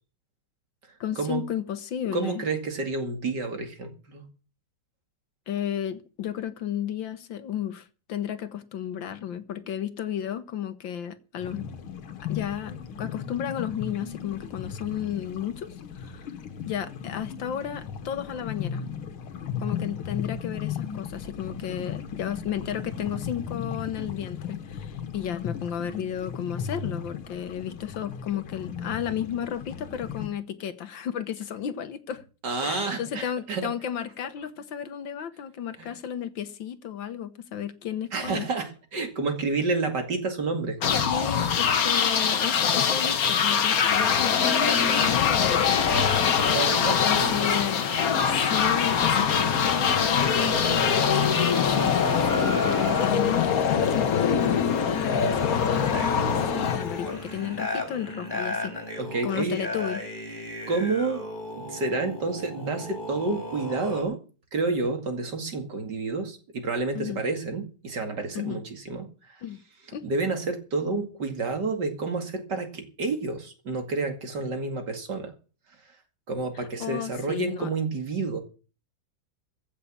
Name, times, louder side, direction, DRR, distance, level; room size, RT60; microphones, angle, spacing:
voice 1, 1.0-2.4 5.5-11.7 12.3-16.3 16.6-18.8 19.6-32.2 32.6-38.5 41.0-45.8 47.0-47.9 48.3-58.7 59.2-60.0 66.9-67.2 68.3-68.6 69.4-69.6 69.9-70.0 76.5-77.7, left 9 dB, 65° left, 1.7 m, -33 dB
voice 2, 2.1-4.3 32.4-33.6 35.8-35.9 38.1-40.8 46.5-47.7 59.0-59.6 60.7-61.3 61.6-64.2 64.5-69.4 70.0-75.3 76.3-78.4, right 3 dB, 55° right, 2.8 m, -29 dB
sound 1, 11.4-30.3, left 7 dB, 90° left, 2.2 m, -36 dB
sound 2, 40.8-57.5, left 7 dB, 50° left, 1.4 m, -23 dB
sound 3, 45.6-53.1 54.0-54.2 54.9-64.0, left 1 dB, 20° left, 4.7 m, -34 dB
15.5 x 6.7 x 8.6 m
omnidirectional pair, 2.3 m